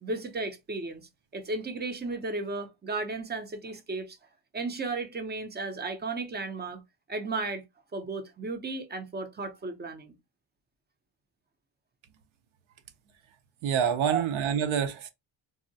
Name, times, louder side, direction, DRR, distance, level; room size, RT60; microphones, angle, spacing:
voice 1, 0.0-1.0 1.3-4.2 4.5-6.8 7.1-7.6 7.9-10.1 14.0-14.2, right 3 dB, 20° right, 0.4 m, -34 dB
voice 2, 13.6-15.1, right 8 dB, 75° right, 0.6 m, -27 dB
3.6 x 2.0 x 2.6 m
cardioid pair, 150°, 48 cm